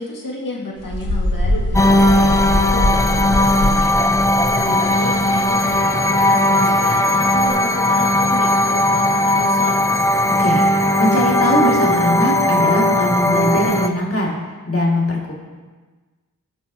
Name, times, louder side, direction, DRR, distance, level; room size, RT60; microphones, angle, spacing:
voice 1, 0.0-10.0, left 1 dB, 70° left, -2 dB, 2.0 m, -31 dB
sound 1, 0.8-5.4 5.7-5.8 6.2-6.3 6.6-6.8 7.3-7.5, left 1 dB, 90° left, 3.1 m, -22 dB
sound 2, 1.7-13.9, left 1 dB, 10° left, 0.6 m, -17 dB
voice 2, 10.4-14.4 14.7-15.3, equal, 40° left, -3 dB, 2.4 m, -20 dB
17.0 x 6.2 x 2.8 m, 1.3 s
cardioid pair, 55°, 34 cm